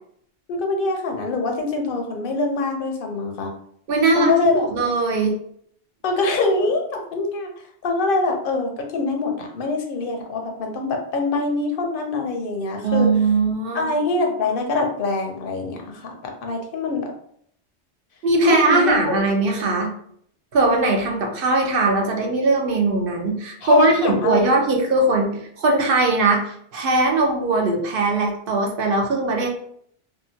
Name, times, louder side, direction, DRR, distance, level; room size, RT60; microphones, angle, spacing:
voice 1, 0.5-3.5 4.1-4.7 6.0-13.1 13.7-17.1 18.4-19.2 23.6-24.4, left 3 dB, 60° left, 3 dB, 0.7 m, -24 dB
voice 2, 3.9-4.3 4.7-5.4 12.8-13.9 18.2-19.9 20.5-29.5, right 2 dB, 60° right, 1 dB, 0.8 m, -20 dB
2.8 x 2.2 x 2.6 m, 0.65 s
omnidirectional pair, 1.2 m